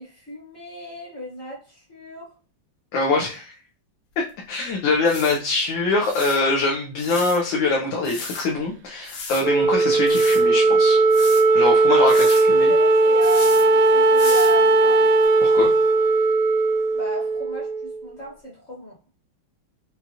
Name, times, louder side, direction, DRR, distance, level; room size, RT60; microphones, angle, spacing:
voice 1, 0.0-2.3 11.9-15.1 16.9-18.9, right 1 dB, 35° left, -3 dB, 1.4 m, -35 dB
voice 2, 2.9-3.5 4.2-11.0 11.5-12.7 15.4-15.7, left 3 dB, 70° left, -1 dB, 1.4 m, -23 dB
sound 1, 4.3-4.4 5.1-5.4 6.0-6.4 7.0-7.4 8.0-8.5 9.0-9.4 10.1-10.4 11.1-11.4 12.1-12.4 13.2-13.7 14.2-14.6 15.2-15.3, left 4 dB, 90° left, 1.9 m, -34 dB
Wind instrument woodwind instrument, 9.4-18.0, right 3 dB, 75° right, 1.1 m, -17 dB
5.3 x 2.4 x 2.9 m, 0.34 s
omnidirectional pair, 2.3 m